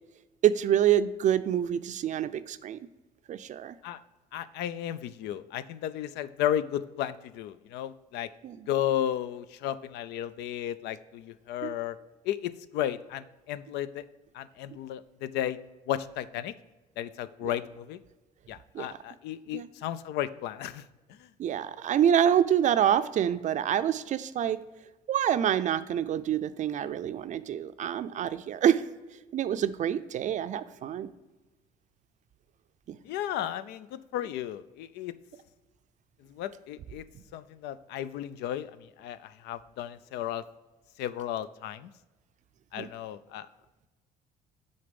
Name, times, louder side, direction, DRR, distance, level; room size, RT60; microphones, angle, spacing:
voice 1, 0.4-2.8 3.3-3.8 8.4-8.7 11.6-11.7 17.4-17.5 18.7-19.0 19.5-19.7 21.4-24.6 25.1-28.8 29.3-31.1 32.9-33.0 37.1-37.2 42.8-42.9, right 10 dB, 45° right, 12 dB, 0.4 m, -26 dB
voice 2, 4.3-8.3 8.7-12.0 12.2-14.0 14.3-15.6 15.9-16.5 17.0-18.0 18.5-20.8 33.0-35.1 36.3-37.0 37.3-40.4 41.0-41.9 42.7-43.5, left 11 dB, 85° left, 15 dB, 0.4 m, -34 dB
6.7 x 4.1 x 5.1 m, 1.1 s
cardioid pair, 110°, 17 cm